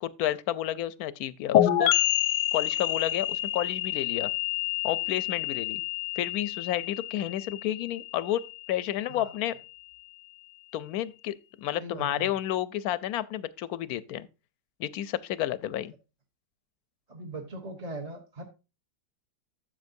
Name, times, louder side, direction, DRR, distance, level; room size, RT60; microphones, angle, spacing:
voice 1, 0.0-1.9 2.5-4.3 4.8-5.8 6.2-8.4 8.7-9.6 10.7-14.3 14.8-15.9, left 12 dB, 70° left, 1.0 m, -31 dB
sound 1, 1.5-9.1, left 13 dB, 90° left, 1.3 m, -28 dB
voice 2, 11.8-12.3 17.1-18.4, right 2 dB, 25° right, 1.0 m, -39 dB
12.5 x 7.5 x 2.6 m
omnidirectional pair, 1.8 m